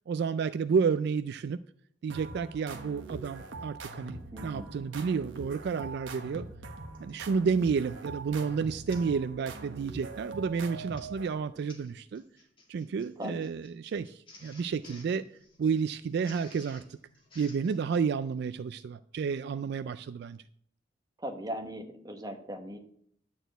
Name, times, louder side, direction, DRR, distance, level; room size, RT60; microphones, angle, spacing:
voice 1, 0.1-1.6 2.0-6.5 7.0-12.2 12.7-15.3 15.6-16.8 17.4-20.4, right 5 dB, 60° right, 13 dB, 0.3 m, -31 dB
sound 1, 2.1-11.6, right 3 dB, 90° right, 1.2 m, -43 dB
voice 2, 4.3-4.7 13.2-13.5 21.2-22.8, equal, 20° right, 4 dB, 1.1 m, -38 dB
Printer, 6.9-7.2 7.8-8.0 8.3-8.4 8.9-9.2 9.5-9.8 10.6-17.8, left 2 dB, 30° left, 2.3 m, -55 dB
11.0 x 4.4 x 7.9 m, 0.66 s
head